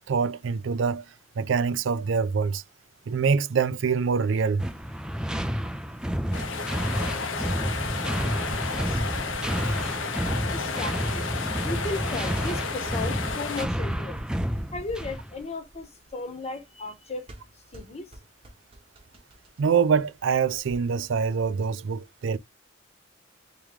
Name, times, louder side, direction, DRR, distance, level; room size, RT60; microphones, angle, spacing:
voice 1, 0.1-1.0 1.4-2.6 3.1-4.6 19.6-22.4, right 5 dB, 70° right, 0.4 m, -25 dB
sound 1, 4.6-15.3, equal, 5° right, 0.4 m, -30 dB
sound 2, 4.8-20.8, right 1 dB, 30° right, 0.9 m, -46 dB
sound 3, 6.3-13.6, left 5 dB, 85° left, 0.8 m, -32 dB
voice 2, 10.5-11.3 11.6-14.2 14.7-17.2 17.7-18.1, left 3 dB, 35° left, 0.9 m, -35 dB
3.6 x 2.9 x 3.1 m
head